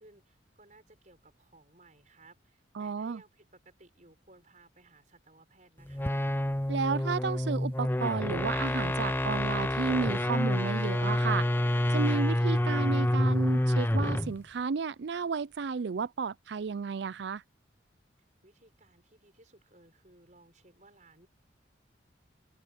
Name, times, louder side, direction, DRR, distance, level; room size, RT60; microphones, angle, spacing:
voice 1, 0.0-6.2 18.4-21.3, right 2 dB, 40° right, 6.4 m, -59 dB
voice 2, 2.8-3.2 6.7-11.5 11.9-17.4, right 5 dB, 65° right, 0.4 m, -32 dB
sound 1, 5.9-14.4, left 1 dB, 10° left, 0.7 m, -28 dB
open air
head